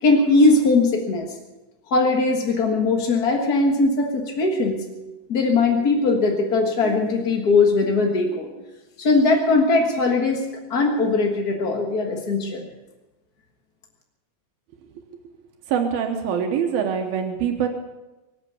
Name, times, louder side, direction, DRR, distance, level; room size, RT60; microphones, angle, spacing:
voice 1, 0.0-1.3 1.9-8.5 9.0-10.4 10.7-12.6, left 3 dB, 55° left, 2 dB, 1.0 m, -20 dB
voice 2, 15.7-17.7, right 7 dB, 85° right, 3 dB, 3.0 m, -24 dB
24.5 x 8.2 x 7.0 m, 1.1 s
omnidirectional pair, 4.2 m